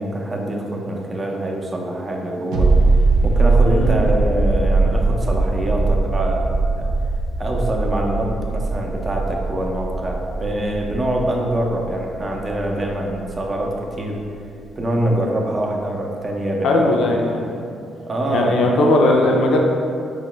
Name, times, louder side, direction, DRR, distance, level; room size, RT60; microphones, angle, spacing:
voice 1, 0.0-6.5 6.8-6.9 7.4-14.2 14.8-17.0 18.1-18.6, right 1 dB, 30° right, 0 dB, 0.5 m, -24 dB
sound 1, 2.5-13.9 14.1-14.2, right 3 dB, 90° right, 0.4 m, -20 dB
voice 2, 16.6-17.6 18.3-19.6, left 2 dB, 70° left, 0 dB, 0.5 m, -18 dB
4.6 x 2.1 x 3.0 m, 2.5 s
cardioid pair, 90°, 0 cm